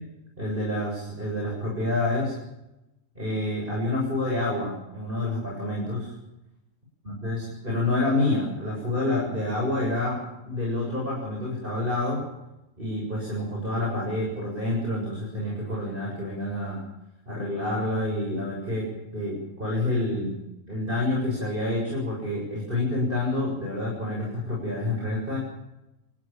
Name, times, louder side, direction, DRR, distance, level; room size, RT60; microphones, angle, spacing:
voice 1, 0.4-2.3 3.2-6.1 7.0-12.3 12.8-16.8 17.3-20.4 20.6-25.4, left 2 dB, 40° right, -2 dB, 7.6 m, -28 dB
29.0 x 15.0 x 7.4 m, 0.92 s
omnidirectional pair, 1.4 m